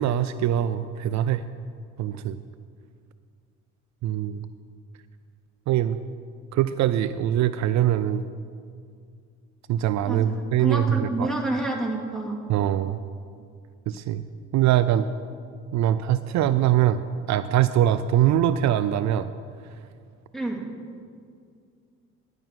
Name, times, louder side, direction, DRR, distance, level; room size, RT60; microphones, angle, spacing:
voice 1, 0.0-1.4 2.0-2.4 4.0-4.5 5.7-6.0 6.5-8.2 9.7-11.3 12.5-13.0 13.9-14.2 14.5-15.1 15.7-17.0 17.3-19.3, right 11 dB, 65° right, 12 dB, 0.5 m, -22 dB
voice 2, 10.0-12.4 20.3-20.6, right 2 dB, ahead, 0 dB, 2.5 m, -29 dB
11.0 x 6.1 x 9.1 m, 2.2 s
supercardioid pair, 70°, 31 cm